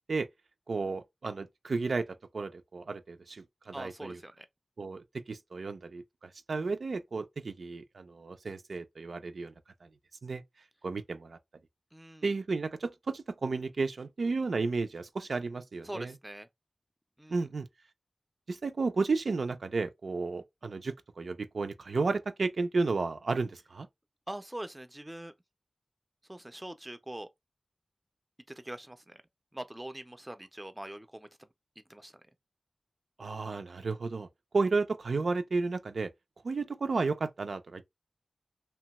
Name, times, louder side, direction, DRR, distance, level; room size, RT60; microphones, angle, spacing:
voice 1, 0.7-4.2 4.8-9.5 9.8-9.9 10.2-10.4 10.8-11.4 12.2-16.2 17.3-17.7 18.5-23.9 33.2-34.3 34.5-36.1 36.4-37.8, right 4 dB, 90° right, 0.3 m, -33 dB
voice 2, 3.7-4.5 11.9-12.2 15.8-16.5 17.2-17.4 24.3-25.3 26.3-27.3 28.6-29.2 29.5-31.3 31.9-32.1, right 1 dB, 15° right, 0.4 m, -43 dB
2.8 x 2.2 x 2.8 m
wide cardioid pair, 70°, 0 cm